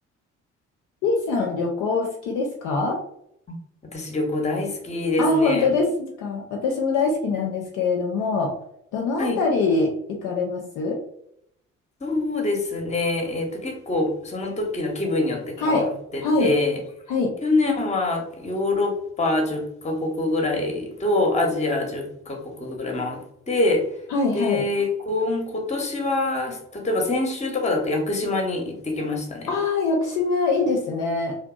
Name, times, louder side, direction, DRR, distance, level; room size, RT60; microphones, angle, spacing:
voice 1, 1.0-3.0 5.2-8.5 8.9-11.0 15.6-15.9 16.2-16.5 17.1-17.3 24.1-24.6 29.5-31.3, left 3 dB, 55° left, 1 dB, 0.5 m, -23 dB
voice 2, 3.9-5.7 9.2-9.4 12.0-16.8 17.4-23.2 23.5-23.8 24.3-29.5, left 2 dB, 20° left, 2 dB, 0.7 m, -25 dB
2.6 x 2.1 x 2.3 m, 0.73 s
figure-of-eight pair, 40°, 38 cm